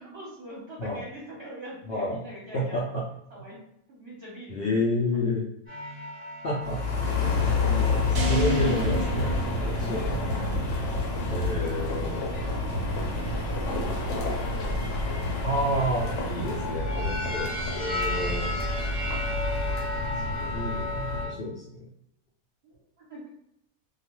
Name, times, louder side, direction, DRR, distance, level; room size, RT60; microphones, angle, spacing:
voice 1, 0.0-2.9 3.3-4.8 10.2-10.6 11.0-15.5 17.4-17.6 18.3-18.7 20.2-20.9 22.6-23.3, equal, 50° right, -5 dB, 0.9 m, -45 dB
voice 2, 1.9-2.2 2.5-3.0 4.5-5.5 6.4-6.8 7.2-7.3 7.7-7.8 8.1-9.3 9.6-10.2 11.3-12.2 15.4-18.5 20.4-21.9, left 1 dB, 80° left, -4 dB, 0.5 m, -30 dB
sound 1, 5.7-11.2 11.8-12.7 13.9-14.6 15.6-21.3, left 2 dB, 10° left, 0.6 m, -36 dB
sound 2, 6.6-21.3, left 2 dB, 60° left, 0.9 m, -29 dB
sound 3, 8.1-10.4, right 2 dB, 85° right, 0.4 m, -32 dB
2.4 x 2.3 x 2.9 m, 0.76 s
omnidirectional pair, 1.6 m